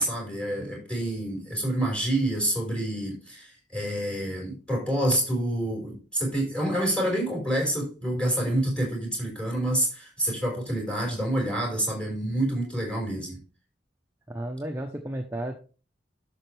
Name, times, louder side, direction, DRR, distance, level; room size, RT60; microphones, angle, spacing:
voice 1, 0.0-13.4, right 1 dB, 5° left, 4.9 m, -27 dB
voice 2, 14.3-15.5, right 1 dB, 15° right, 0.9 m, -33 dB
10.5 x 7.0 x 3.4 m
head